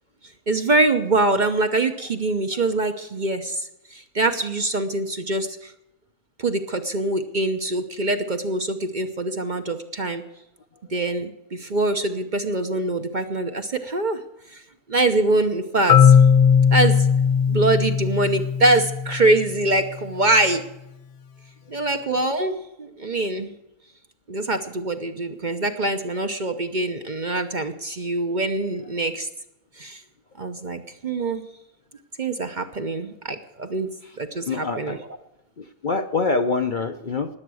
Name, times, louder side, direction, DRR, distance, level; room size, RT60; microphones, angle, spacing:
voice 1, 0.5-5.7 6.4-10.2 10.9-14.2 14.5-14.6 14.9-16.2 16.7-17.1 17.5-20.6 21.7-23.5 24.3-29.3 29.8-30.0 30.4-31.5 32.2-33.9 34.2-35.1, right 2 dB, 40° right, 7 dB, 0.9 m, -24 dB
Marimba xylophone, 15.9-19.8, left 7 dB, 65° left, 0.3 m, -18 dB
voice 2, 34.5-35.0 35.6-37.3, left 4 dB, 45° left, 7 dB, 0.8 m, -25 dB
20.0 x 8.0 x 6.3 m, 0.89 s
omnidirectional pair, 1.4 m